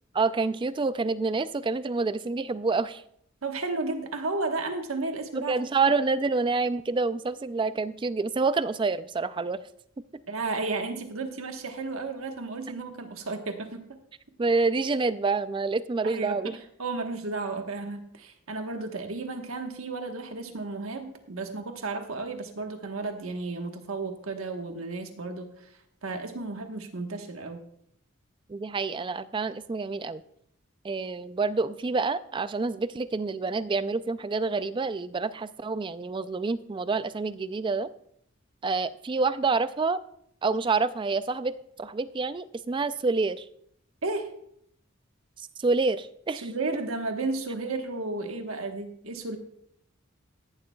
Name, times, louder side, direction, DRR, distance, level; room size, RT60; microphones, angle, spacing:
voice 1, 0.1-3.0 5.3-9.6 10.1-10.2 14.4-16.6 28.5-30.2 30.8-37.9 38.6-40.0 40.4-43.5 45.4-46.5, right 4 dB, 25° right, 15 dB, 0.3 m, -27 dB
voice 2, 3.4-5.5 10.3-13.8 16.0-25.7 26.0-27.6 44.0-44.3 46.4-49.4, right 3 dB, 85° right, 5 dB, 1.2 m, -33 dB
15.5 x 11.5 x 2.3 m, 0.71 s
head